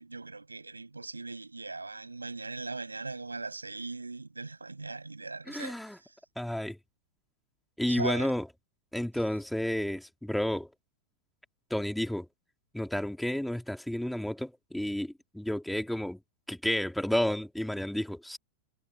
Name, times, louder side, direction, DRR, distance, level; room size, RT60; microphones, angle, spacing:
voice 1, 0.0-6.1 7.9-8.3, right 3 dB, 80° right, 6.7 m, -39 dB
voice 2, 5.5-6.0 6.4-6.8 7.8-8.5 8.9-10.7 11.7-12.3 12.7-16.2 16.5-18.4, left 1 dB, ahead, 3.6 m, -31 dB
figure-of-eight pair, 90°, 0 cm